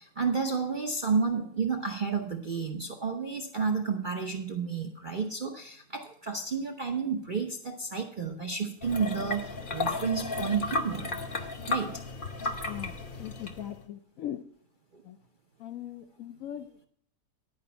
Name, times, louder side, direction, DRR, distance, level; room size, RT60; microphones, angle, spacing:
voice 1, 0.0-11.2 11.7-12.0 14.9-15.0, right 5 dB, 45° right, 3 dB, 0.6 m, -31 dB
sound 1, 8.8-13.8, left 3 dB, 40° left, 0.8 m, -34 dB
voice 2, 13.2-14.4 15.0-15.2 15.6-16.9, left 11 dB, 65° left, 8 dB, 0.9 m, -39 dB
10.5 x 5.0 x 6.8 m, 0.62 s
omnidirectional pair, 1.8 m